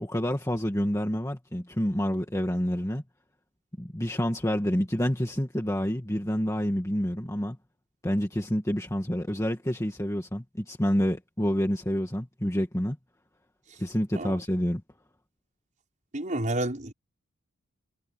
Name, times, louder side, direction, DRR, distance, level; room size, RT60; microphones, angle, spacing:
voice 1, 0.0-3.0 3.8-7.6 8.0-13.0 13.8-14.8, equal, 15° left, 1.9 m, -28 dB
voice 2, 16.1-16.9, right 1 dB, 35° right, 5.5 m, -30 dB
head